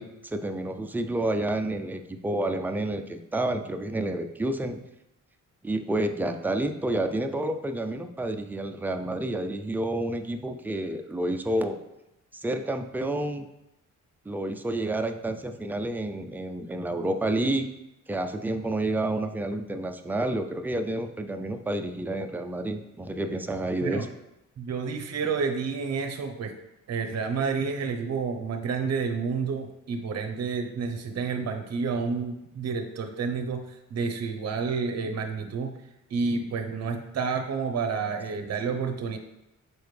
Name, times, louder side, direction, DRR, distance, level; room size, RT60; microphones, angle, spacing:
voice 1, 0.0-4.8 5.6-11.8 12.3-13.5 14.3-17.7 18.1-24.1, right 1 dB, 5° right, 6 dB, 0.3 m, -29 dB
voice 2, 24.6-26.5 26.9-35.8 36.1-39.2, right 5 dB, 55° right, 5 dB, 0.8 m, -30 dB
7.0 x 4.5 x 3.2 m, 0.91 s
wide cardioid pair, 145°, 31 cm